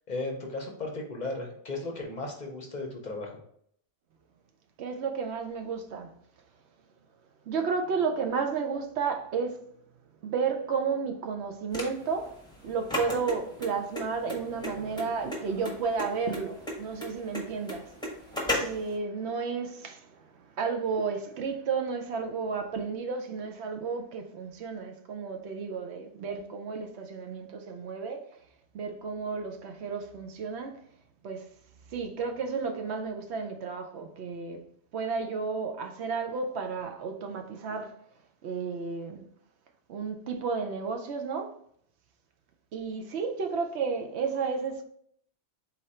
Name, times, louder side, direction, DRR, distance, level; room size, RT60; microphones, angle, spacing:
voice 1, 0.1-3.4, left 2 dB, 45° left, 0.7 m, -35 dB
voice 2, 4.8-6.2 7.5-9.7 10.2-12.4 12.6-28.3 28.7-30.8 31.2-31.5 31.9-37.9 38.4-39.3 39.9-41.6 42.7-44.8, right 5 dB, 70° right, 0.8 m, -32 dB
sound 1, 11.7-18.9, left 1 dB, 5° left, 0.9 m, -34 dB
4.1 x 2.6 x 4.3 m
omnidirectional pair, 1.2 m